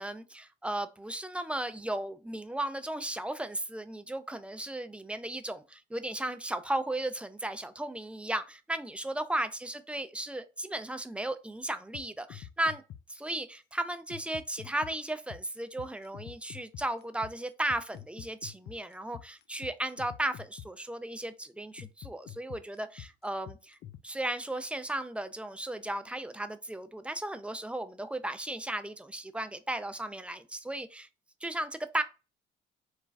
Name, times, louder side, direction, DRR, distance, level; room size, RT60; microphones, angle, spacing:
voice 1, 0.0-12.8 13.1-23.8 24.0-31.1 31.4-32.0, right 1 dB, 5° right, 0.4 m, -35 dB
sound 1, 11.9-13.2 14.1-20.9 21.8-24.0, left 11 dB, 60° left, 0.4 m, -45 dB
3.1 x 2.2 x 2.4 m
hypercardioid pair, 60°, 19 cm